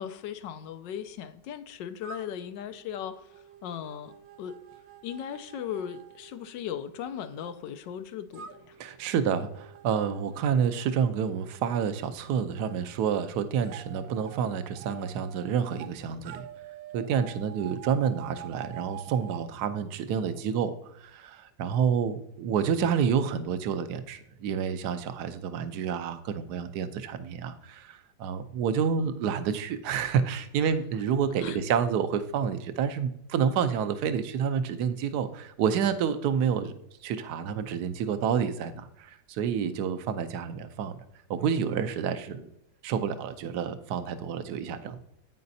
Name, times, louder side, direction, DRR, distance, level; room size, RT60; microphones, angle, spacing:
voice 1, 0.0-3.3 3.6-4.6 5.0-8.8 31.4-31.6, left 9 dB, 85° left, 10 dB, 1.3 m, -37 dB
sound 1, 2.0-7.5 8.3-12.8 13.6-15.9 16.2-19.5, right 11 dB, 85° right, 1.4 m, -48 dB
voice 2, 8.8-16.5 16.9-36.7 37.0-41.0 41.3-42.5 42.8-45.0, right 7 dB, 70° right, 10 dB, 1.2 m, -29 dB
9.3 x 8.8 x 2.7 m, 0.76 s
omnidirectional pair, 1.9 m